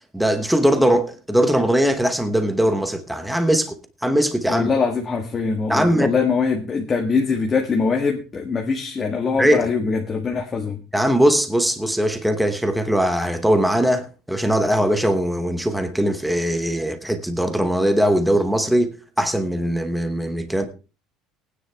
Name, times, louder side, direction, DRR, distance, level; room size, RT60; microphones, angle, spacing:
voice 1, 0.1-4.7 5.7-6.1 9.4-9.7 10.9-20.7, equal, ahead, 1.0 m, -20 dB
voice 2, 4.5-10.8, left 5 dB, 20° left, 1.5 m, -22 dB
19.0 x 9.7 x 3.4 m
cardioid pair, 165°, 0 cm